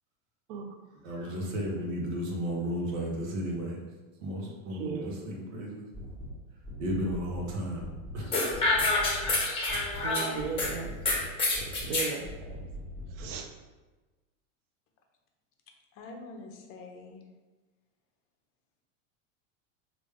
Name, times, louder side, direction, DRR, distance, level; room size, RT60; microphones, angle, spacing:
voice 1, 1.0-3.8 4.2-5.9 6.8-7.8 8.1-8.3, equal, 85° right, -2 dB, 1.0 m, -33 dB
voice 2, 4.7-5.2 10.0-11.0 11.6-12.3 13.1-13.5, right 5 dB, 40° right, 4 dB, 0.4 m, -36 dB
sound 1, 5.9-6.3 6.6-7.5 7.8-8.2 8.5-9.4 9.7-10.1 10.4-11.2 11.5-11.9 12.2-13.3, equal, 10° right, 1.0 m, -41 dB
sound 2, 8.3-10.7 11.1-12.1, left 2 dB, 15° left, 0.9 m, -27 dB
voice 3, 16.0-17.2, left 3 dB, 35° left, 2 dB, 0.6 m, -45 dB
3.3 x 2.5 x 3.2 m, 1.2 s
supercardioid pair, 135°, 38 cm